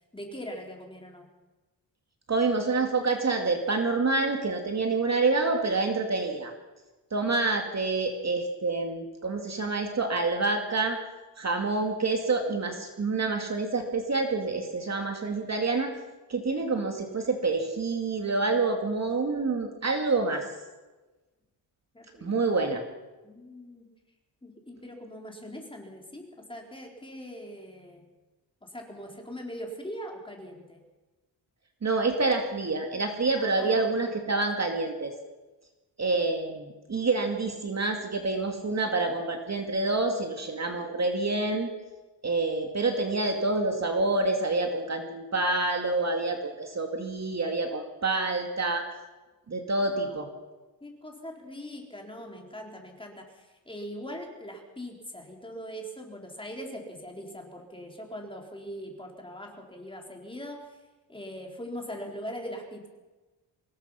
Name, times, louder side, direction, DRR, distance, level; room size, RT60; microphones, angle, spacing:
voice 1, 0.1-1.3 21.9-22.4 23.2-23.9 24.4-28.0 28.6-30.8 33.3-34.1 49.8-50.1 50.8-60.8 61.1-62.9, equal, 10° left, 1 dB, 4.2 m, -41 dB
voice 2, 2.3-6.5 7.1-11.0 11.4-15.9 16.3-20.4 22.2-22.8 31.8-35.1 36.0-41.7 42.2-48.8 49.5-50.3, right 3 dB, 35° right, 4 dB, 2.4 m, -27 dB
25.0 x 20.5 x 5.8 m, 1.2 s
wide cardioid pair, 150°, 45 cm